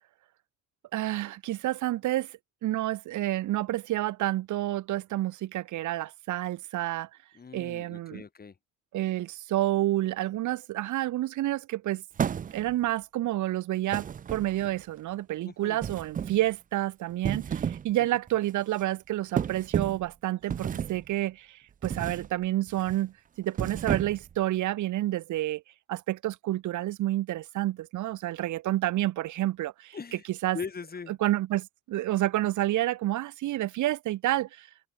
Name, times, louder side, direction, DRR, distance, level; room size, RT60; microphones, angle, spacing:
voice 1, 0.9-2.3 2.6-7.1 7.5-8.2 8.9-12.0 12.5-25.6 25.9-30.0 30.3-30.6 31.2-34.7, right 15 dB, 80° right, 1.0 m, -29 dB
voice 2, 7.3-8.5 15.4-15.8 29.9-30.3 30.5-31.2, left 5 dB, 30° left, 1.6 m, -40 dB
sound 1, 12.2-12.9 13.9-14.8 15.8-16.5 17.1-17.9 18.3-18.5 19.4-20.1 20.5-21.1 21.8-22.3 22.7-23.0 23.5-24.3, right 8 dB, 30° right, 0.4 m, -32 dB
cardioid pair, 90°, 30 cm